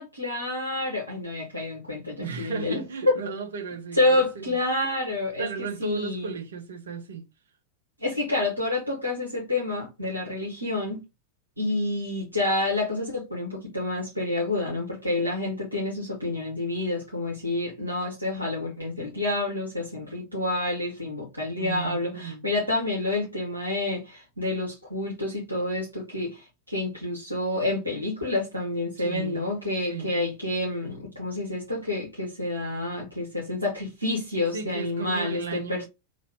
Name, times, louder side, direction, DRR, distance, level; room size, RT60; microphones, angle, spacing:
voice 1, 0.0-3.1 4.0-6.3 8.0-11.0 11.6-35.8, left 2 dB, 90° right, 1.1 m, -28 dB
voice 2, 2.2-4.6 5.4-7.2 21.6-22.4 29.0-29.5 29.9-30.1 34.5-35.8, right 5 dB, 65° right, 0.9 m, -35 dB
2.9 x 2.7 x 4.2 m
figure-of-eight pair, 90°, 0 cm